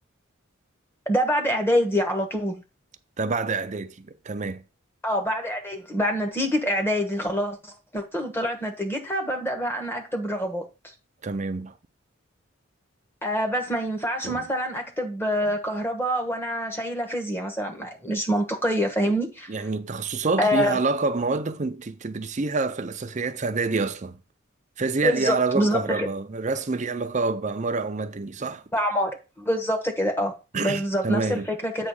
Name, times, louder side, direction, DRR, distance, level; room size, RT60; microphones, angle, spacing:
voice 1, 1.1-2.6 5.0-10.6 13.2-19.7 20.4-20.8 25.0-26.1 28.7-31.9, equal, 10° left, 1.2 m, -26 dB
voice 2, 3.2-4.6 11.2-11.7 14.2-14.4 19.0-19.1 19.5-24.2 24.8-28.6 30.5-31.5, right 3 dB, 35° right, 0.6 m, -27 dB
8.3 x 3.1 x 6.3 m
head